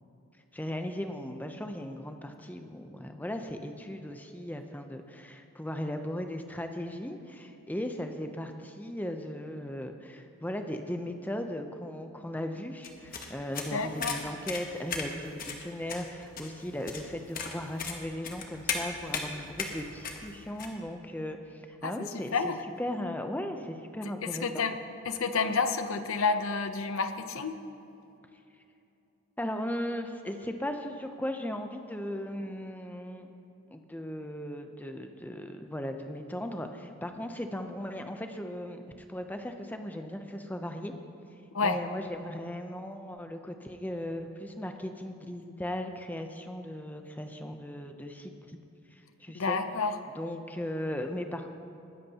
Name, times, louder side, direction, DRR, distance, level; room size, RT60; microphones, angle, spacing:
voice 1, 0.5-24.6 29.4-33.3 33.7-40.9 41.6-48.6 48.9-49.6 50.2-51.5, left 1 dB, 5° left, 6 dB, 0.6 m, -37 dB
sound 1, 12.8-20.7, left 5 dB, 40° left, 1.0 m, -37 dB
voice 2, 13.7-14.2 21.8-22.1 22.3-22.6 24.2-24.8 25.1-27.5 41.5-41.8 49.3-50.0, left 4 dB, 65° left, 9 dB, 0.7 m, -29 dB
20.0 x 11.0 x 2.9 m, 2.8 s
head